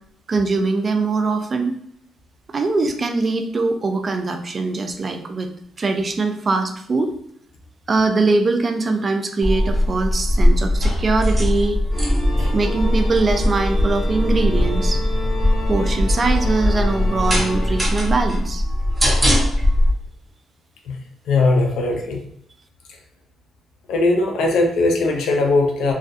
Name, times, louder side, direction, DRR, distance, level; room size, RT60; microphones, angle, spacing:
voice 1, 0.3-1.8 2.5-5.5 5.8-7.1 7.9-11.8 12.5-15.0 15.7-18.6, right 3 dB, 35° right, 6 dB, 0.3 m, -22 dB
sound 1, 9.4-19.9, left 1 dB, 15° right, 0.9 m, -20 dB
sound 2, 11.9-17.8, equal, 25° left, 1.1 m, -31 dB
voice 2, 21.3-22.2 23.9-25.9, left 2 dB, 80° left, 2 dB, 0.5 m, -19 dB
2.4 x 2.2 x 2.5 m, 0.72 s
cardioid pair, 90°, 0 cm